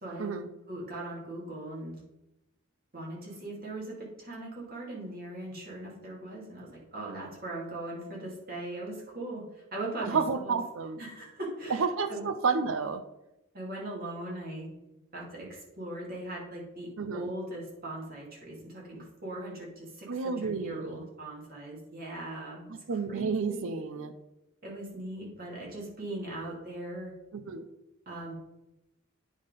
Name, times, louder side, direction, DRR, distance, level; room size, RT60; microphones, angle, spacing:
voice 1, 0.0-0.3 0.7-2.0 2.9-10.6 11.0-12.3 13.5-14.7 15.1-22.6 23.1-23.7 24.6-27.1 28.1-28.3, right 1 dB, 45° right, -4 dB, 2.4 m, -40 dB
voice 2, 10.0-11.0 11.7-13.0 17.0-17.3 20.1-21.1 22.7-24.1 27.3-27.6, right 5 dB, 75° right, 8 dB, 0.6 m, -31 dB
9.3 x 3.7 x 5.1 m, 0.93 s
head